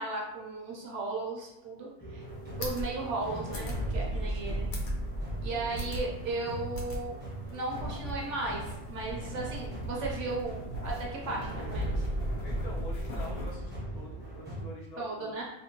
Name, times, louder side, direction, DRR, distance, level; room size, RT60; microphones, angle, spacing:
voice 1, 0.0-2.2 2.6-4.7 5.4-7.2 7.5-12.1 15.0-15.4, right 2 dB, 65° right, -3 dB, 0.8 m, -36 dB
sound 1, 2.0-14.6, right 1 dB, 10° right, 0.5 m, -37 dB
sound 2, 2.3-13.6, equal, 85° left, 1.2 m, -41 dB
voice 2, 4.1-4.6 12.4-15.4, left 1 dB, 65° left, -3 dB, 0.4 m, -47 dB
2.8 x 2.1 x 2.8 m, 0.88 s
omnidirectional pair, 1.5 m